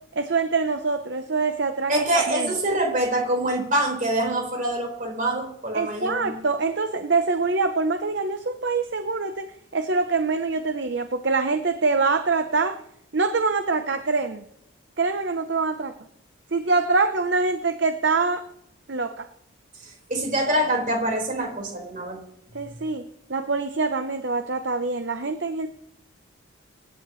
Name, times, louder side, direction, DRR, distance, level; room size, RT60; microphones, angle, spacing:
voice 1, 0.2-2.5 5.7-12.8 13.1-14.4 15.0-15.9 16.5-18.4 18.9-19.3 22.5-23.0 23.3-25.7, right 4 dB, 55° right, 8 dB, 0.8 m, -24 dB
voice 2, 1.9-6.4 19.8-22.2, right 1 dB, 40° right, 0 dB, 4.7 m, -25 dB
24.5 x 11.5 x 3.2 m, 0.79 s
head